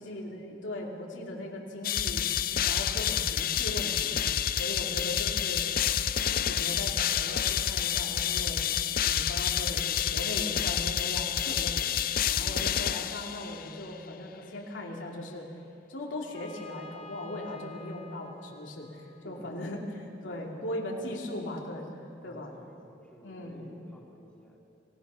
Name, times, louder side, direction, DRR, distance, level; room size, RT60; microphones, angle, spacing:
voice 1, 0.0-2.3 2.6-4.1 4.5-5.7 6.3-8.6 9.1-15.5 15.9-19.8 20.2-21.9 22.2-22.5 23.2-23.6, left 1 dB, 85° left, -1 dB, 2.8 m, -38 dB
sound 1, 1.8-13.7, left 9 dB, 50° left, 0.5 m, -29 dB
voice 2, 12.3-12.7 19.2-19.8 20.2-20.6 21.0-21.1 22.2-24.6, equal, 5° left, -4 dB, 3.0 m, -52 dB
Trumpet, 16.3-20.1, left 4 dB, 30° left, 1.1 m, -51 dB
26.5 x 17.5 x 5.7 m, 2.6 s
head